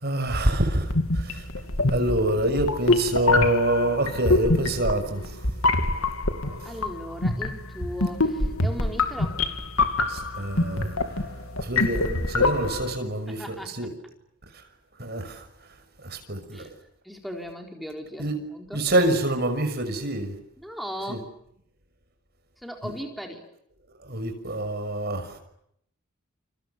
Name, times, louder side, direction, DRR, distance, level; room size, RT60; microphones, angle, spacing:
voice 1, 0.0-1.6 1.9-5.4 6.6-6.7 10.1-11.0 11.6-13.9 15.0-15.4 16.0-16.7 18.2-18.3 18.7-20.3 21.1-21.2 22.8-22.9 24.0-25.4, right 1 dB, 45° right, 6.0 m, -26 dB
sound 1, 0.8-13.0, left 2 dB, 75° left, 2.7 m, -25 dB
voice 2, 6.4-9.4 13.3-13.9 16.5-16.7 17.0-18.8 20.6-21.3 22.6-23.4, equal, ahead, 4.1 m, -37 dB
29.0 x 28.5 x 6.9 m
head